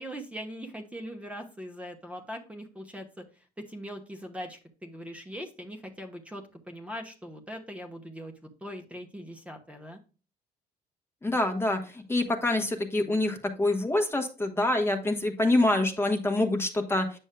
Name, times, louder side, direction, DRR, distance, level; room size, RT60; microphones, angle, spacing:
voice 1, 0.0-3.2 3.6-8.3 8.6-10.0, equal, 5° right, 3 dB, 1.0 m, -41 dB
voice 2, 11.2-17.1, left 2 dB, 15° left, 5 dB, 1.1 m, -26 dB
9.0 x 6.2 x 2.2 m, 0.34 s
cardioid pair, 110°, 17 cm